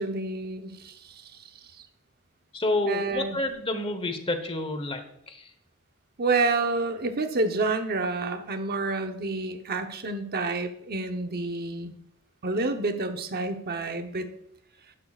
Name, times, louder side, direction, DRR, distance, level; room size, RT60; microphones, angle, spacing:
voice 1, 0.0-1.4 2.9-3.4 6.2-11.9 12.4-14.3, right 3 dB, 45° right, 6 dB, 0.9 m, -29 dB
voice 2, 2.5-5.0 5.3-5.5, left 2 dB, 25° left, 8 dB, 1.1 m, -29 dB
12.0 x 10.5 x 2.4 m, 0.77 s
head